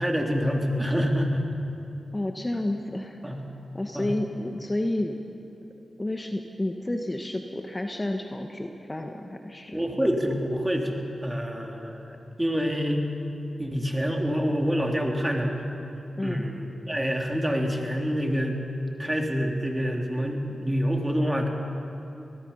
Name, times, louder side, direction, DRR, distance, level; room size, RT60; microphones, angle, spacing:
voice 1, 0.0-1.5 3.2-3.4 3.9-4.1 9.7-13.0 13.6-15.5 16.2-18.6 19.0-21.5, equal, 15° right, 1 dB, 3.3 m, -27 dB
voice 2, 2.1-3.2 3.7-5.2 6.0-9.8 16.2-16.5, left 1 dB, 25° left, 4 dB, 1.4 m, -30 dB
24.5 x 19.5 x 5.6 m, 2.8 s
cardioid pair, 45°, 0 cm